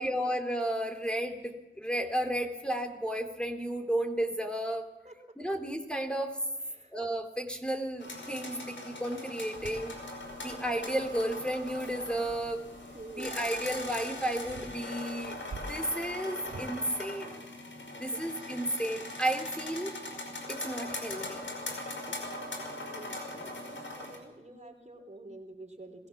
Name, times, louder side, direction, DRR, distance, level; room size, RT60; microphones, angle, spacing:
voice 1, 0.0-4.9 5.4-6.4 6.9-10.0 10.4-12.7 13.2-15.4 15.7-17.5 18.0-19.9 20.5-21.5, right 1 dB, 5° left, 4 dB, 3.6 m, -33 dB
sound 1, 8.0-24.2, left 2 dB, 70° left, 5.4 m, -41 dB
sound 2, 9.5-16.7, right 3 dB, 90° right, 4.0 m, -50 dB
voice 2, 12.9-13.4 22.1-22.2 22.8-26.1, right 2 dB, 35° right, 5 dB, 3.5 m, -48 dB
25.5 x 17.5 x 7.3 m, 1.0 s
cardioid pair, 40°, 20 cm